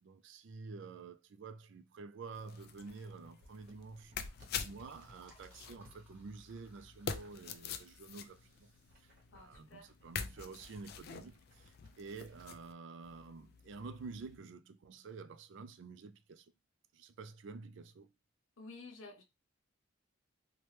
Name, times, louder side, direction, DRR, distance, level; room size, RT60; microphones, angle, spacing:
voice 1, 0.0-4.1 4.6-8.7 9.0-16.5 16.9-18.1, right 4 dB, 60° right, 0.3 m, -49 dB
sound 1, 2.2-6.0 6.7-8.1 8.4-12.5, equal, 45° right, 0.9 m, -63 dB
sound 2, 2.3-12.7 13.0-14.4, left 6 dB, 50° left, 0.3 m, -47 dB
Liquid, 3.7-10.3, right 1 dB, 10° right, 0.8 m, -67 dB
voice 2, 9.3-9.9 18.6-19.2, left 3 dB, 75° left, 0.8 m, -52 dB
3.0 x 2.2 x 3.1 m
head